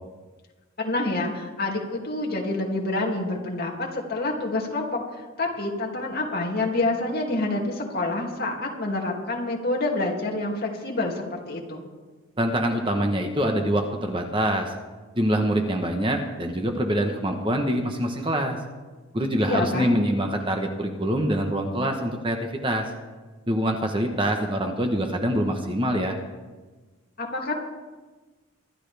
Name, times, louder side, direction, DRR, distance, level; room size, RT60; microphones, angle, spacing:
voice 1, 0.8-4.9 5.4-11.8 19.4-20.0 27.2-27.5, left 2 dB, 45° left, -1 dB, 2.6 m, -27 dB
voice 2, 12.4-14.7 15.2-18.6 19.1-22.4 22.6-22.9 23.5-26.2, equal, 25° right, 3 dB, 1.1 m, -25 dB
25.0 x 12.0 x 3.4 m, 1.3 s
head